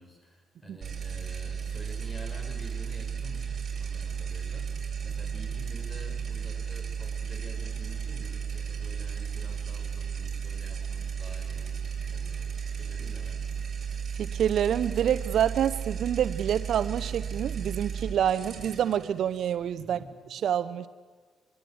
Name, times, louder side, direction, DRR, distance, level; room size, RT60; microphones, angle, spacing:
voice 1, 0.0-13.5 19.8-20.1, equal, 15° left, 3 dB, 6.4 m, -48 dB
sound 1, 0.8-20.1, right 7 dB, 40° right, 5.9 m, -34 dB
voice 2, 14.2-20.0 20.3-20.9, right 9 dB, 70° right, 14 dB, 0.7 m, -27 dB
24.5 x 23.5 x 7.9 m, 1.4 s
cardioid pair, 90°, 0 cm